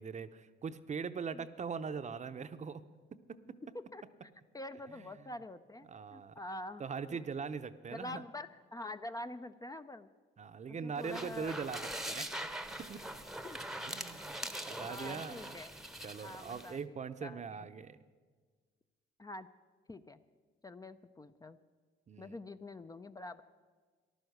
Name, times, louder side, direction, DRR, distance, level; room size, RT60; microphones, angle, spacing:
voice 1, 0.0-2.8 3.3-3.4 5.9-6.4 6.8-8.2 10.4-11.8 12.1-12.3 12.8-13.0 13.9-14.4 14.7-15.5 16.0-18.0 22.1-22.4, right 6 dB, 35° right, 11 dB, 0.7 m, -41 dB
voice 2, 3.7-7.2 7.9-10.1 10.7-11.6 11.9-12.0 13.4-13.6 14.4-14.5 14.9-15.7 16.2-16.8 17.2-17.4 19.2-19.5 19.9-20.2 20.6-21.6 22.2-23.4, left 1 dB, 20° left, 10 dB, 0.5 m, -46 dB
sound 1, 11.0-16.7, right 1 dB, ahead, 0.9 m, -43 dB
14.5 x 11.5 x 6.6 m, 1.5 s
cardioid pair, 90°, 20 cm